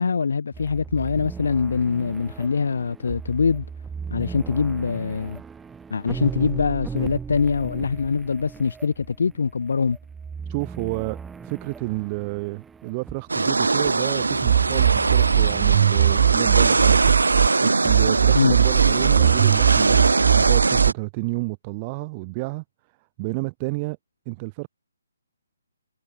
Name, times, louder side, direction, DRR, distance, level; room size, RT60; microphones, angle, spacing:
voice 1, 0.0-3.7 4.1-5.4 5.9-10.0 18.3-18.6, left 5 dB, 65° left, 0.5 m, -23 dB
sound 1, 0.5-20.1, right 5 dB, 10° right, 2.3 m, -38 dB
voice 2, 10.5-17.0 17.6-22.6 23.2-24.0 24.3-24.7, right 27 dB, 25° right, 0.7 m, -30 dB
sound 2, 13.3-20.9, right 3 dB, 85° right, 1.0 m, -21 dB
sound 3, 14.5-17.5 17.9-20.9, right 10 dB, 45° right, 0.3 m, -19 dB
figure-of-eight pair, 145°, 0 cm